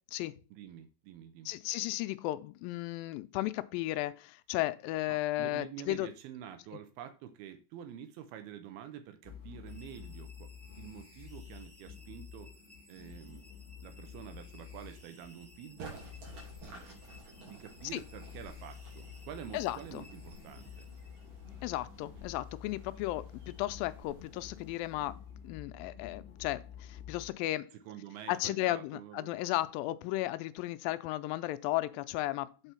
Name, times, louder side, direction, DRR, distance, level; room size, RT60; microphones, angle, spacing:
voice 1, 0.5-1.5 5.1-12.5 12.9-13.4 13.8-16.0 17.5-20.9 27.7-29.4, right 10 dB, 85° right, 2.8 m, -48 dB
voice 2, 1.5-6.1 17.9-18.0 19.5-20.0 21.6-27.7 28.3-32.7, left 16 dB, 80° left, 2.2 m, -35 dB
sound 1, 9.2-27.3, left 8 dB, 40° left, 0.8 m, -50 dB
sound 2, 9.6-21.5, left 1 dB, 20° right, 0.6 m, -60 dB
sound 3, 15.8-25.6, right 3 dB, 60° right, 4.4 m, -54 dB
8.0 x 4.5 x 5.6 m
omnidirectional pair, 4.3 m